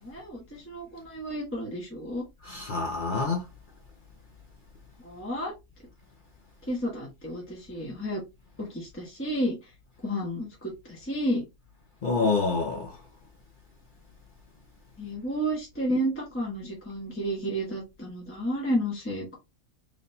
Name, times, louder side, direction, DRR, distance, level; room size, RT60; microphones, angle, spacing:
voice 1, 0.0-2.2 5.0-5.5 6.7-8.2 8.6-9.7 10.0-11.4 15.0-19.4, equal, 10° left, 0.9 m, -31 dB
voice 2, 2.4-3.5 12.0-13.0, left 4 dB, 50° left, 0.6 m, -27 dB
3.9 x 3.2 x 2.6 m
omnidirectional pair, 1.7 m